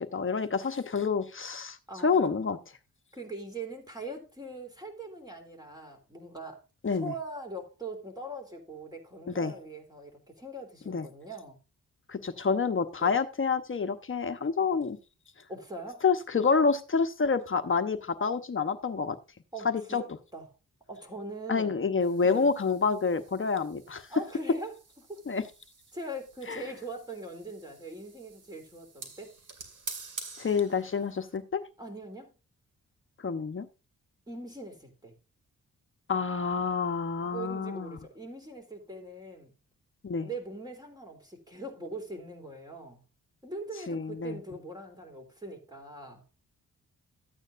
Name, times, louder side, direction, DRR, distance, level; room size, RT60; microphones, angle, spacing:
voice 1, 0.0-1.8 2.0-2.6 6.8-7.1 9.3-9.5 10.9-11.1 12.1-15.0 16.0-19.2 19.6-20.0 21.5-24.1 25.3-25.4 26.5-26.6 30.4-31.6 33.2-33.7 36.1-38.0 40.0-40.3 43.9-44.4, left 5 dB, 40° left, 1.0 m, -28 dB
voice 2, 1.9-2.4 3.1-6.6 6.9-11.6 13.0-13.1 15.5-16.0 19.5-20.5 20.9-21.7 22.2-22.5 24.1-24.8 25.1-25.2 25.9-29.3 31.8-32.3 34.3-35.1 37.0-39.5 40.2-43.0 43.4-46.2, right 2 dB, 10° right, 3.3 m, -41 dB
sound 1, 22.0-31.4, right 4 dB, 65° right, 2.5 m, -48 dB
13.0 x 8.9 x 2.6 m
cardioid pair, 85°, 33 cm